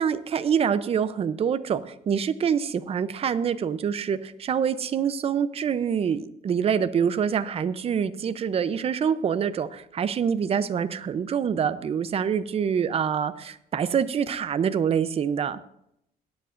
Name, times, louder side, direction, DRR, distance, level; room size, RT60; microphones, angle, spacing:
voice 1, 0.0-15.6, right 7 dB, 40° right, 13 dB, 0.6 m, -26 dB
17.5 x 10.0 x 2.6 m, 0.77 s
cardioid pair, 130°, 16 cm